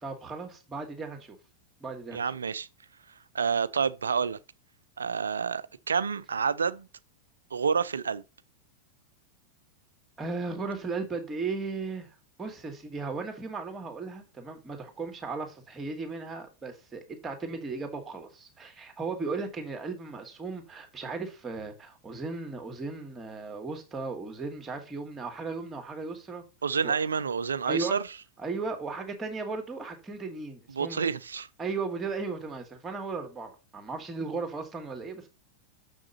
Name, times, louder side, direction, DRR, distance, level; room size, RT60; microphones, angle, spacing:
voice 1, 0.0-1.4 1.8-2.4 10.2-26.4 26.8-27.0 27.7-28.0 28.4-31.1 31.6-35.3, right 4 dB, 15° right, 2.3 m, -36 dB
voice 2, 2.1-2.7 3.3-4.4 5.0-6.9 7.5-8.2 26.6-28.0 30.8-31.5, right 6 dB, 70° right, 0.5 m, -28 dB
7.1 x 6.2 x 4.2 m
figure-of-eight pair, 90°, 0 cm